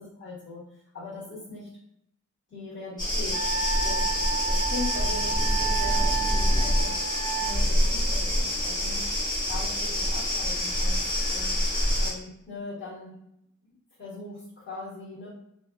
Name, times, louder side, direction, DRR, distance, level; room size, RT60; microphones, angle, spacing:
voice 1, 0.0-1.7 2.5-4.0 4.4-7.0 7.3-9.0 9.5-11.6 12.0-13.1 14.0-15.3, left 3 dB, 40° left, -9 dB, 1.2 m, -40 dB
sound 1, 3.0-12.1, equal, 15° left, 0.7 m, -26 dB
Wind instrument woodwind instrument, 3.3-7.5, right 5 dB, 25° right, 0.8 m, -31 dB
2.4 x 2.3 x 2.2 m, 0.77 s
wide cardioid pair, 175°, 32 cm